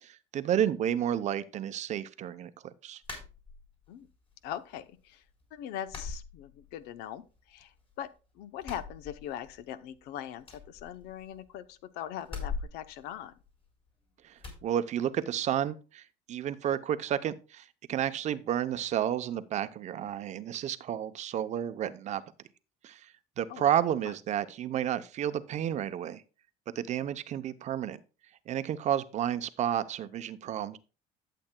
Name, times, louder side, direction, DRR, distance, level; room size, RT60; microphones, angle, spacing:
voice 1, 0.0-2.5 2.8-3.0 14.2-16.0 16.3-22.2 22.8-23.1 23.4-26.2 26.7-28.0 28.5-30.8, right 10 dB, 45° right, 0.7 m, -31 dB
sound 1, 3.0-3.9 4.3-5.0 5.3-5.4 5.9-7.0 7.3-8.1 8.5-9.7 10.0-10.1 10.4-11.6 12.2-13.9 14.4-14.7, left 4 dB, 35° left, 3.8 m, -42 dB
voice 2, 4.4-5.2 5.5-8.1 8.3-13.3 23.5-23.6 24.0-24.1, left 10 dB, 75° left, 0.7 m, -41 dB
12.0 x 7.7 x 2.2 m
cardioid pair, 130°, 17 cm